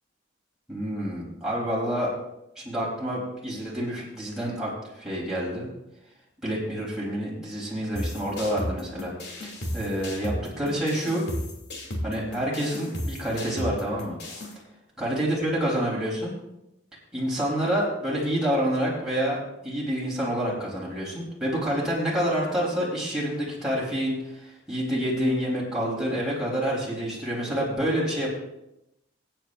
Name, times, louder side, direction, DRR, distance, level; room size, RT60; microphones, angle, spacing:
voice 1, 0.7-2.1 2.6-4.7 5.0-5.7 6.4-9.1 9.4-11.3 12.0-14.2 15.0-16.3 17.1-19.4 19.6-24.2 24.4-28.3, equal, 5° right, -7 dB, 3.8 m, -28 dB
sound 1, 8.0-14.5, left 1 dB, 60° left, 2.8 m, -34 dB
23.0 x 9.1 x 2.6 m, 0.88 s
head